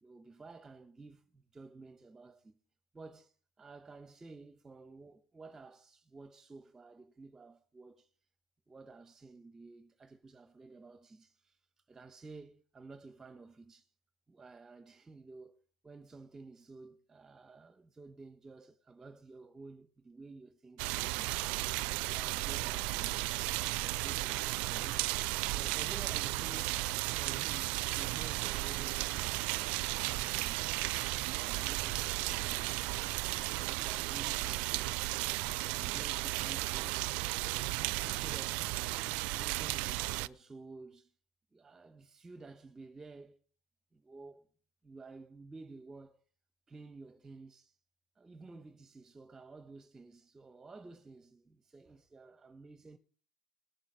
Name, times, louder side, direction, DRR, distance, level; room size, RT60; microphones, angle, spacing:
voice 1, 0.0-2.6 2.9-8.1 8.7-13.9 14.3-21.4 22.0-23.3 23.6-25.1 25.5-26.8 27.1-30.9 31.2-32.8 33.2-35.1 35.6-38.7 39.3-41.1 41.5-43.4 43.9-44.5 44.8-46.2 46.7-47.8 48.2-53.0, right 3 dB, 15° right, 1.0 m, -53 dB
sound 1, 20.8-40.3, right 20 dB, 60° right, 0.5 m, -34 dB
19.0 x 7.6 x 6.2 m
supercardioid pair, 125°, 2 cm